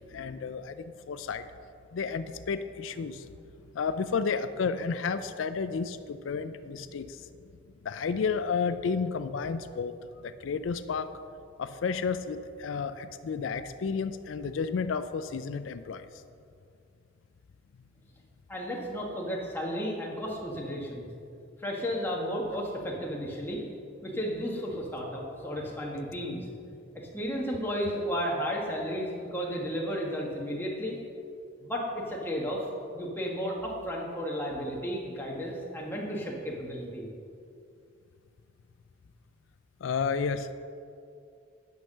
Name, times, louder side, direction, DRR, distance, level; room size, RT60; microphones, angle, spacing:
voice 1, 0.0-1.4 1.9-3.3 3.7-7.3 7.8-9.9 10.2-11.1 11.6-16.1 39.8-40.5, left 5 dB, 90° left, 12 dB, 0.4 m, -32 dB
voice 2, 18.5-21.0 21.6-23.6 24.0-26.4 26.9-30.9 31.6-37.1, equal, 10° left, -3 dB, 1.5 m, -33 dB
9.2 x 5.8 x 6.5 m, 2.4 s
head